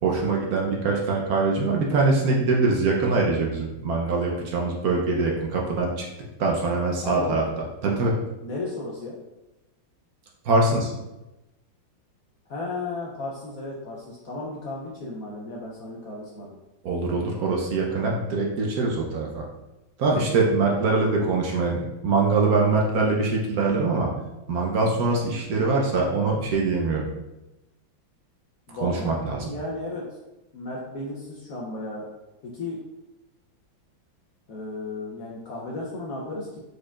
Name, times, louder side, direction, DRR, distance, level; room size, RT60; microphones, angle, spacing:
voice 1, 0.0-6.0 6.4-7.4 7.8-8.1 10.4-10.9 16.8-19.4 20.0-24.1 24.5-27.0 28.8-29.5, right 3 dB, 65° right, -1 dB, 1.0 m, -23 dB
voice 2, 7.0-7.5 8.4-9.1 12.5-16.6 20.7-21.3 28.7-30.1 30.5-32.0 32.4-32.8 34.5-36.6, left 2 dB, 65° left, -3 dB, 0.8 m, -34 dB
4.7 x 4.4 x 2.4 m, 0.98 s
omnidirectional pair, 2.2 m